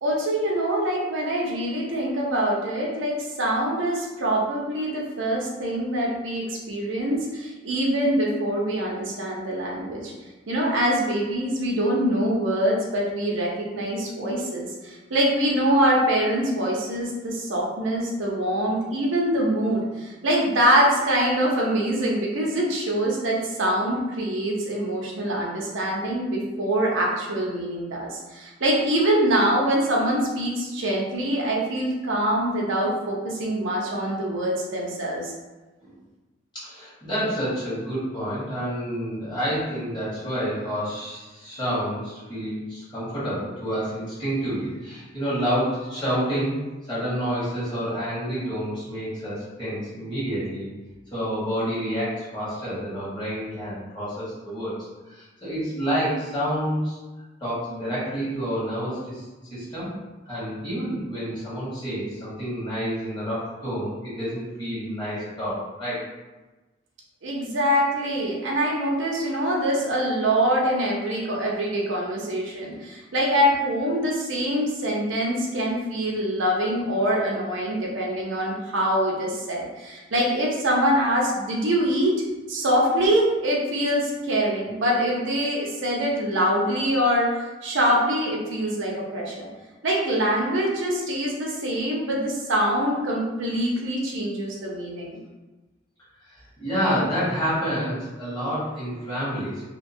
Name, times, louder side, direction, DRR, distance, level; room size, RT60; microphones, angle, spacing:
voice 1, 0.0-10.1 10.5-35.3 67.2-82.1 82.5-89.5 89.8-95.2, right 1 dB, 75° right, -2 dB, 0.6 m, -24 dB
voice 2, 36.5-46.6 46.8-50.7 51.1-57.0 57.4-59.2 59.5-59.9 60.2-66.0 96.3-99.6, equal, 25° left, -11 dB, 1.4 m, -28 dB
2.8 x 2.2 x 2.6 m, 1.2 s
head